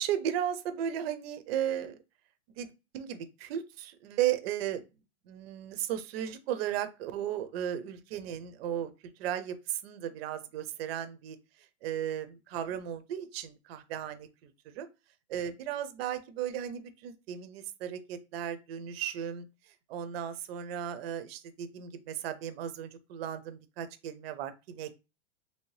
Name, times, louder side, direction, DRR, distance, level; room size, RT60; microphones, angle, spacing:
voice 1, 0.0-2.0 2.6-2.7 2.9-4.8 5.3-8.9 9.2-11.4 11.8-14.9 15.3-19.5 19.9-25.0, right 10 dB, 50° right, 11 dB, 0.5 m, -35 dB
3.2 x 2.7 x 3.1 m, 0.28 s
supercardioid pair, 160°, 38 cm